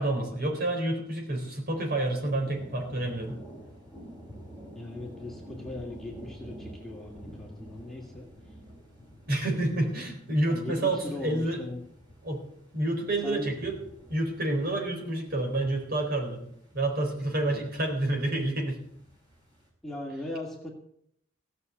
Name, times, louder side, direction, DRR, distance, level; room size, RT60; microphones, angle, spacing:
voice 1, 0.0-3.4 9.3-11.6 12.2-12.4 12.7-13.8 14.1-16.4 16.7-18.8, right 1 dB, 50° right, 1 dB, 4.0 m, -29 dB
sound 1, 2.1-19.7, right 1 dB, 20° right, 4.9 m, -49 dB
voice 2, 4.7-8.3 10.5-11.8 13.2-13.5 17.5-17.6 19.8-20.7, left 2 dB, ahead, -2 dB, 2.1 m, -39 dB
16.5 x 6.8 x 8.4 m, 0.71 s
head